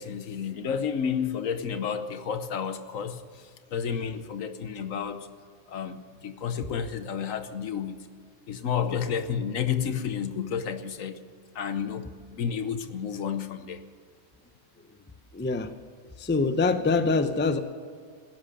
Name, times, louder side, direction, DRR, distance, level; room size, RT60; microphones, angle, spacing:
voice 1, 0.0-5.3 5.7-8.0 8.5-11.2 11.5-13.8, left 7 dB, 70° left, 10 dB, 1.3 m, -31 dB
voice 2, 15.3-15.7 16.2-17.6, left 4 dB, 10° left, 9 dB, 0.5 m, -24 dB
17.5 x 10.5 x 6.6 m, 2.1 s
omnidirectional pair, 1.4 m